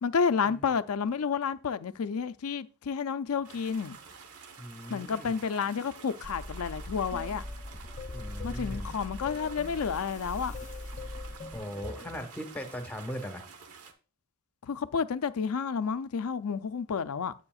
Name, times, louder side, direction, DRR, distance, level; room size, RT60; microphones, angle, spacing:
voice 1, 0.0-4.0 4.9-7.4 8.4-10.5 14.6-17.3, left 6 dB, 75° left, 0.5 m, -30 dB
sound 1, 3.4-13.9, right 5 dB, 80° right, 1.2 m, -50 dB
voice 2, 4.6-5.3 8.1-8.9 11.5-13.4, equal, 5° left, 1.1 m, -39 dB
sound 2, 6.2-11.6, left 1 dB, 40° right, 1.7 m, -41 dB
sound 3, 7.1-12.3, left 4 dB, 35° left, 0.6 m, -45 dB
9.7 x 8.3 x 2.4 m
head